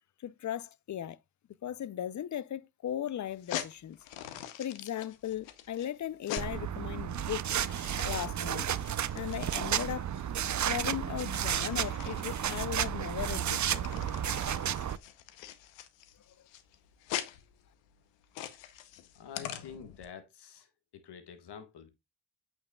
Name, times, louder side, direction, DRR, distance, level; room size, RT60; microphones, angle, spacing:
voice 1, 0.2-1.2 1.6-4.0 4.6-7.6 8.0-8.7 9.2-10.1 10.6-13.8, left 11 dB, 45° left, 0.6 m, -37 dB
sound 1, 3.3-20.0, left 12 dB, 90° left, 0.8 m, -44 dB
sound 2, 6.4-15.0, right 9 dB, 45° right, 0.6 m, -32 dB
voice 2, 19.1-20.7 21.0-21.9, left 7 dB, 65° left, 1.5 m, -47 dB
8.3 x 7.2 x 2.3 m
hypercardioid pair, 40°, 43 cm